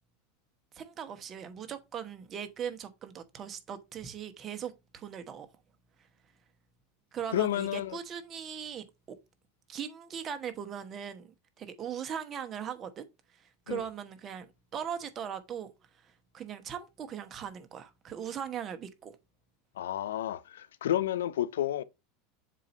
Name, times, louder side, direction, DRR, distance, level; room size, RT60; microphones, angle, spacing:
voice 1, 0.7-5.5 7.1-9.2 9.7-13.1 13.4-14.5 14.7-15.7 16.3-19.2, right 8 dB, 35° right, 1.1 m, -39 dB
voice 2, 7.3-8.0 13.7-13.8 19.8-21.8, left 12 dB, 90° left, 0.5 m, -31 dB
7.5 x 2.7 x 5.3 m
supercardioid pair, 110°, 0 cm